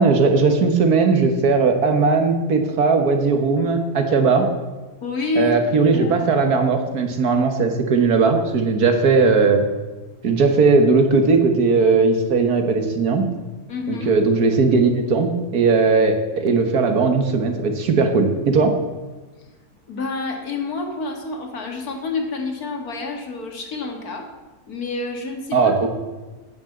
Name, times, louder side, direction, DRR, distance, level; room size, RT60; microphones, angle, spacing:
voice 1, 0.0-4.5 5.4-9.6 10.2-13.3 13.9-18.7 25.5-25.9, right 4 dB, 85° right, 6 dB, 1.9 m, -18 dB
voice 2, 5.0-5.6 5.9-6.3 13.7-14.2 19.9-24.3 24.7-25.8, left 3 dB, 75° left, 3 dB, 2.3 m, -28 dB
9.3 x 8.9 x 7.8 m, 1.2 s
omnidirectional pair, 1.6 m